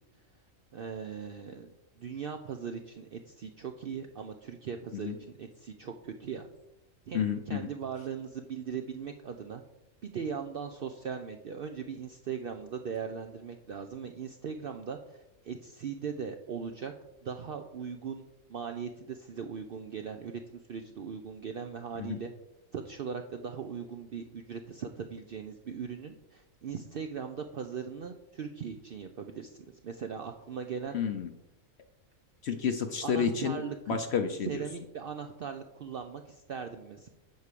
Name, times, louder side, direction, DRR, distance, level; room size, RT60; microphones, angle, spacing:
voice 1, 0.7-5.1 5.4-6.5 7.1-9.6 10.0-16.9 17.2-18.2 18.5-20.4 20.7-22.3 22.7-31.0 33.0-34.0 34.5-37.1, right 6 dB, 60° right, 6 dB, 0.6 m, -39 dB
voice 2, 7.1-7.7 22.0-22.2 30.9-31.3 32.4-33.6 33.9-34.5, left 7 dB, 60° left, 7 dB, 0.8 m, -30 dB
8.2 x 4.7 x 6.7 m, 0.92 s
omnidirectional pair, 1.4 m